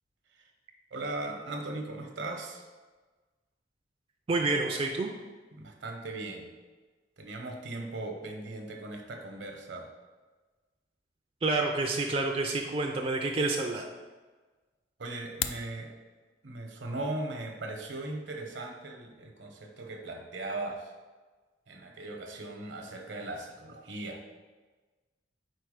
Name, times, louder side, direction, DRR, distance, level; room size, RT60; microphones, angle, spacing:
voice 1, 0.9-2.6 5.5-6.5 7.2-9.9 15.0-15.9 16.4-20.9 21.7-24.2, right 2 dB, 75° right, 3 dB, 0.9 m, -38 dB
voice 2, 4.3-5.1 11.4-13.9, right 3 dB, 30° right, 1 dB, 0.4 m, -28 dB
sound 1, 15.2-15.7, left 10 dB, 90° left, 0.4 m, -34 dB
4.6 x 4.6 x 4.9 m, 1.3 s
head